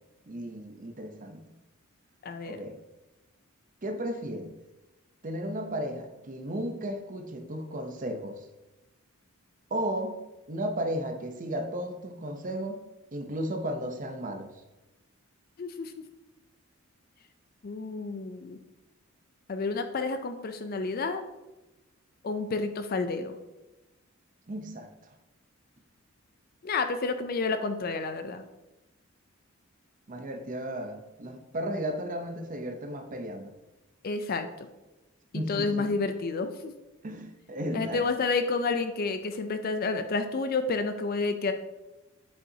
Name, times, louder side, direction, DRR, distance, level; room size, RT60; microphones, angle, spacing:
voice 1, 0.3-1.4 2.5-2.8 3.8-4.5 5.2-8.5 9.7-10.2 10.5-12.8 13.1-14.5 24.5-24.9 30.1-33.5 35.3-35.9 37.0-38.1, right 1 dB, 40° right, 6 dB, 0.7 m, -34 dB
voice 2, 2.2-2.6 15.6-15.9 17.6-18.6 19.5-21.2 22.2-23.4 26.6-28.4 34.0-34.5 35.3-36.7 37.7-41.5, left 4 dB, 45° left, 8 dB, 0.4 m, -30 dB
8.5 x 5.5 x 2.7 m, 1.0 s
head